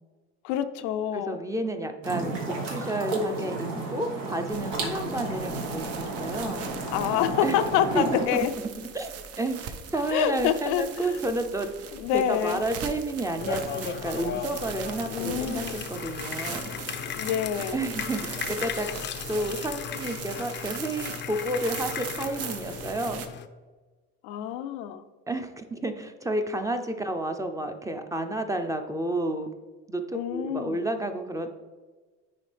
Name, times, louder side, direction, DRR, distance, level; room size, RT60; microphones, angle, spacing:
voice 1, 0.4-1.4 6.9-8.5 10.1-11.2 11.9-12.6 15.1-15.9 17.2-17.8 24.2-25.0 30.1-30.9, left 10 dB, 90° left, 9 dB, 0.5 m, -27 dB
voice 2, 1.1-6.6 7.4-7.6 7.9-11.7 12.1-16.7 17.7-18.9 19.3-23.2 25.3-29.5 29.9-30.0 30.3-31.5, right 1 dB, 10° right, 6 dB, 0.5 m, -31 dB
sound 1, 2.0-8.3, right 2 dB, 90° right, 1.6 m, -32 dB
sound 2, 4.5-23.3, right 7 dB, 55° right, 0.7 m, -40 dB
sound 3, 13.4-23.5, left 8 dB, 40° left, 0.5 m, -36 dB
9.7 x 3.4 x 3.3 m, 1.3 s
cardioid pair, 110°, 30 cm